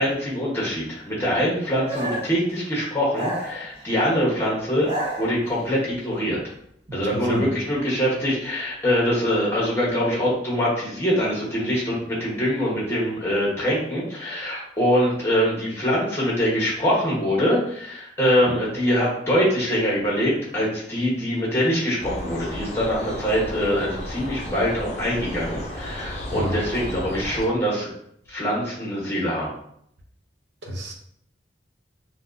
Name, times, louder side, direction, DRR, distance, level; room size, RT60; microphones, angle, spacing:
voice 1, 0.0-4.9 5.2-6.4 6.9-27.9 28.3-29.5, equal, 15° left, -5 dB, 1.3 m, -23 dB
sound 1, 1.9-2.4 3.1-4.1 4.7-5.7, right 1 dB, 30° right, 0.8 m, -31 dB
voice 2, 6.9-7.5 18.5-18.6 26.3-26.6 30.6-30.9, equal, 75° right, 0 dB, 0.7 m, -29 dB
sound 2, 22.0-27.5, left 1 dB, 40° left, 0.6 m, -33 dB
5.6 x 2.4 x 2.7 m, 0.70 s
head